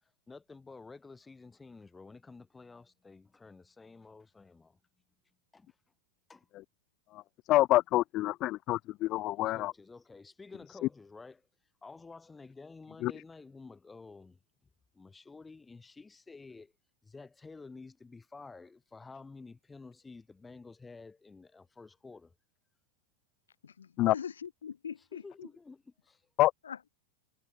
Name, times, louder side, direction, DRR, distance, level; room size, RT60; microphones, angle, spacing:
voice 1, 0.0-4.8 5.5-5.7 6.3-6.5 9.4-11.5 11.8-14.4 14.9-16.7 17.0-22.3 25.1-26.2, left 4 dB, 10° left, 4.7 m, -51 dB
voice 2, 7.5-9.7 13.0-13.1 24.0-24.1 26.4-26.5, left 16 dB, 35° left, 1.0 m, -27 dB
voice 3, 23.6-25.5 26.6-26.8, left 7 dB, 70° left, 7.4 m, -43 dB
figure-of-eight pair, 90°, 0 cm